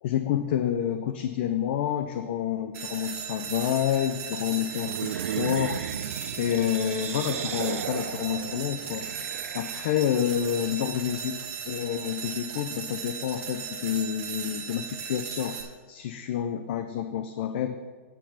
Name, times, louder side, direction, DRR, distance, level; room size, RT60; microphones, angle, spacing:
voice 1, 0.0-5.8 6.4-9.1 9.5-15.6 15.9-17.8, left 10 dB, 50° left, 9 dB, 0.5 m, -28 dB
sound 1, 2.7-15.6, right 7 dB, 35° right, 1.7 m, -37 dB
sound 2, 4.7-10.2, right 10 dB, 70° right, 0.5 m, -35 dB
8.9 x 6.9 x 5.6 m, 1.5 s
hypercardioid pair, 150°, 8 cm